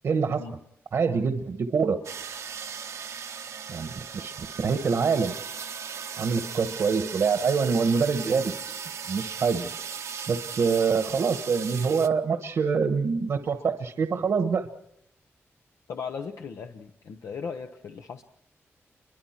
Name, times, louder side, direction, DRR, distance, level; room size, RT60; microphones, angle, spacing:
voice 1, 0.0-0.4 0.9-2.0 3.7-5.4 6.2-8.5 9.1-9.7 10.3-14.7, right 5 dB, 70° right, 7 dB, 1.2 m, -25 dB
sound 1, 2.0-12.1, right 7 dB, 90° right, 1.1 m, -37 dB
voice 2, 15.9-18.2, left 6 dB, 90° left, 4 dB, 1.0 m, -37 dB
29.0 x 23.5 x 4.5 m, 0.74 s
wide cardioid pair, 105°, 5 cm